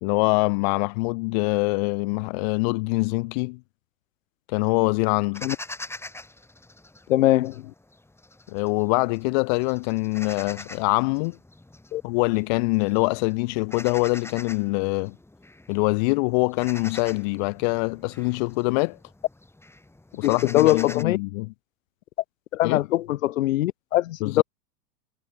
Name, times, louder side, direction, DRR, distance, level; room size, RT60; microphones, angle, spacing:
voice 1, 0.0-3.6 4.5-5.5 8.5-11.4 12.0-15.2 15.7-19.0 20.1-21.5 22.6-22.8 24.2-24.4, left 28 dB, 30° left, 0.5 m, -24 dB
sound 1, 5.3-7.6 7.9-9.2 9.6-21.0, left 2 dB, 5° left, 7.9 m, -43 dB
voice 2, 7.1-7.7 11.9-12.0 20.2-21.2 22.5-24.4, left 15 dB, 55° left, 0.9 m, -22 dB
figure-of-eight pair, 90°, 49 cm